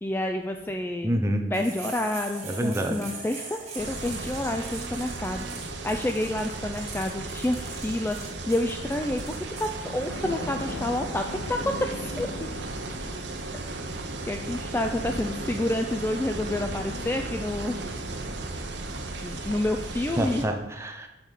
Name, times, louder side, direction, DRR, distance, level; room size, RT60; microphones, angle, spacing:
voice 1, 0.0-1.1 1.5-5.5 5.8-12.3 14.3-17.8 19.2-20.4, left 1 dB, 10° left, 5 dB, 0.3 m, -29 dB
voice 2, 1.0-1.5 2.4-3.0 20.2-21.1, equal, 15° right, 4 dB, 0.7 m, -27 dB
sound 1, 1.5-9.7, right 4 dB, 35° right, 1.7 m, -41 dB
sound 2, 3.8-20.5, right 2 dB, 70° right, 0.9 m, -35 dB
sound 3, 10.1-17.4, left 2 dB, 60° left, 0.6 m, -41 dB
5.5 x 5.2 x 6.3 m, 0.96 s
head